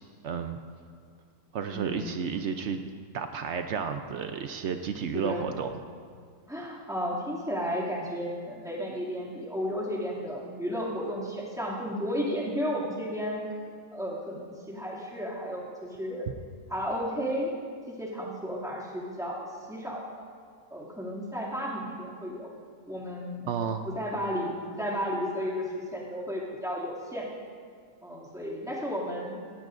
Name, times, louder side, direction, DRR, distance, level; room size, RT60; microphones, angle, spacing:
voice 1, 0.2-0.6 1.5-2.8 3.1-5.7 23.5-23.9, right 6 dB, 85° right, 6 dB, 0.6 m, -32 dB
voice 2, 1.7-2.3 5.1-5.4 6.5-13.4 13.9-16.3 16.7-17.5 17.9-20.2 20.7-22.5 22.9-23.5 23.9-27.3 28.0-29.4, equal, ahead, -6 dB, 2.3 m, -33 dB
17.5 x 17.0 x 2.6 m, 2.1 s
omnidirectional pair, 1.9 m